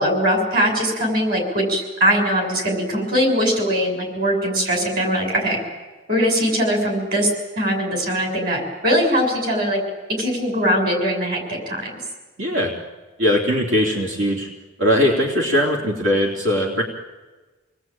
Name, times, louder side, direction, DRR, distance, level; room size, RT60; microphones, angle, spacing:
voice 1, 0.0-5.6 6.1-7.3 7.6-9.8 10.1-11.9, equal, 50° right, 2 dB, 6.6 m, -21 dB
voice 2, 12.4-12.7 13.2-14.5 14.8-16.8, equal, 85° right, 0 dB, 3.3 m, -20 dB
28.0 x 20.0 x 9.0 m, 1.3 s
head